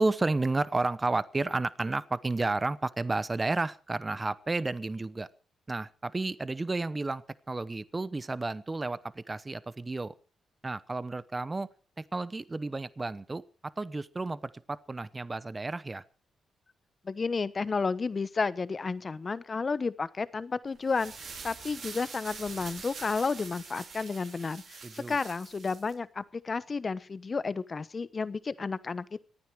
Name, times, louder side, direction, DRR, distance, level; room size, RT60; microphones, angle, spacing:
voice 1, 0.0-5.3 5.7-10.1 10.6-11.7 12.1-16.0 24.8-25.2, right 3 dB, 25° right, 17 dB, 0.9 m, -32 dB
voice 2, 17.0-24.8 25.1-29.2, left 4 dB, 35° left, 16 dB, 1.0 m, -32 dB
sound 1, 20.7-25.9, right 5 dB, 65° right, 5.2 m, -45 dB
25.0 x 9.5 x 4.7 m, 0.36 s
cardioid pair, 80°, 0 cm